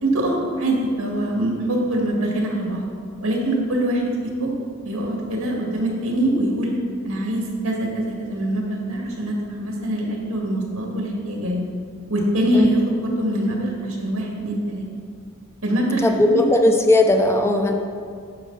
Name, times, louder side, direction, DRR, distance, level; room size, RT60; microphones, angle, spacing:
voice 1, 0.0-2.9 3.2-4.0 4.4-4.5 4.8-6.7 7.0-11.6 12.1-14.9 15.6-16.5, right 1 dB, 90° right, -1 dB, 1.9 m, -23 dB
voice 2, 16.0-17.7, left 1 dB, 15° left, 4 dB, 0.5 m, -17 dB
9.9 x 6.5 x 3.9 m, 2.2 s
head